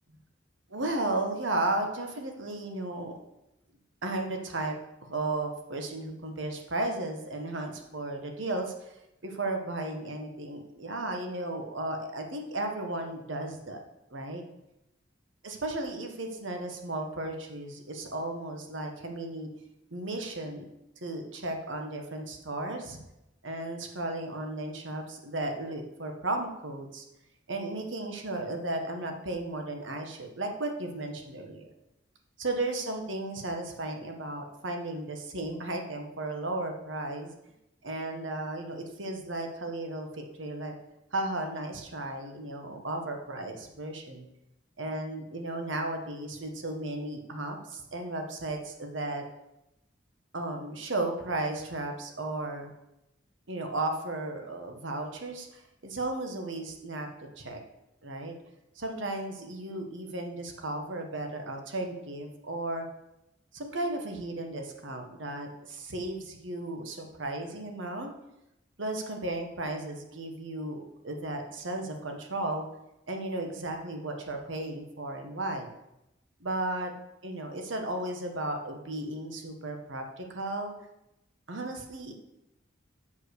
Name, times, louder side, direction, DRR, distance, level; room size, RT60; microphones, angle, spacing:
voice 1, 0.7-3.1 4.0-4.8 5.1-8.7 9.2-13.8 14.1-14.4 15.4-19.5 19.9-20.7 21.0-23.0 23.4-27.0 27.5-31.7 32.4-37.3 37.8-40.7 41.1-44.3 44.8-49.2 50.3-52.7 53.5-57.1 57.4-57.6 58.0-58.3 58.8-62.9 63.5-68.1 68.8-72.6 73.1-75.7 76.4-76.9 77.2-80.7 81.5-82.1, right 2 dB, 85° right, 3 dB, 1.5 m, -34 dB
7.4 x 5.7 x 6.5 m, 0.88 s
head